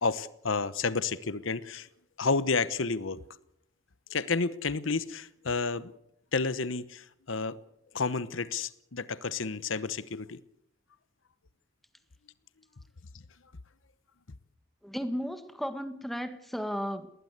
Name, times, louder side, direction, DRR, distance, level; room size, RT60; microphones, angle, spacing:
voice 1, 0.0-1.9 2.2-3.2 4.1-5.9 6.3-7.6 7.9-10.4, left 4 dB, 75° left, 1.0 m, -30 dB
voice 2, 14.8-17.1, equal, ahead, 1.6 m, -34 dB
19.5 x 19.5 x 8.1 m
head